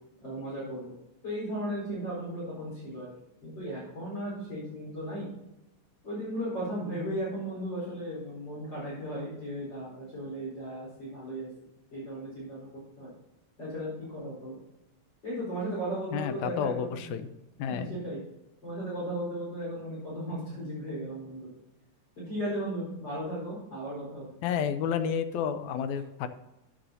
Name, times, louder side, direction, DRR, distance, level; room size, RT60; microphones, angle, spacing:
voice 1, 0.2-0.9 1.2-3.1 3.4-5.3 6.0-11.5 11.9-12.7 13.0-13.1 13.6-14.6 15.2-17.0 17.7-18.2 18.6-21.5 22.2-24.3, right 1 dB, 35° left, -7 dB, 4.7 m, -36 dB
voice 2, 16.1-17.3 17.6-18.0 24.4-26.3, left 8 dB, 80° left, 10 dB, 2.0 m, -30 dB
12.5 x 9.1 x 2.7 m, 0.94 s
omnidirectional pair, 3.4 m